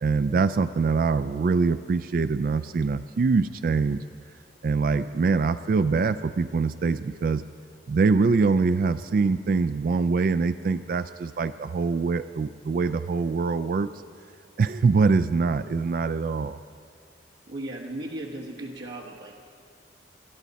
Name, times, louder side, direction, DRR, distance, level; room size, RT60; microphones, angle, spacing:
voice 1, 0.0-4.0 4.6-7.4 7.9-13.9 14.6-16.6, right 4 dB, 50° right, 12 dB, 0.3 m, -24 dB
voice 2, 17.5-19.4, right 1 dB, 80° right, -3 dB, 1.2 m, -36 dB
21.5 x 12.0 x 4.1 m, 2.4 s
head